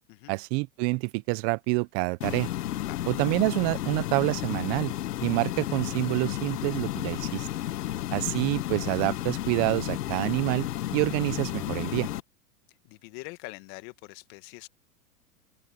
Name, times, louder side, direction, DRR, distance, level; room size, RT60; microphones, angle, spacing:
voice 1, 0.3-2.5 3.1-4.9 5.2-7.5 8.1-10.7 10.9-12.1, right 27 dB, 40° right, 0.9 m, -27 dB
sound 1, 2.2-12.2, left 13 dB, 85° left, 1.4 m, -32 dB
voice 2, 12.8-14.7, left 25 dB, 45° left, 1.7 m, -44 dB
open air
hypercardioid pair, 125°, 46 cm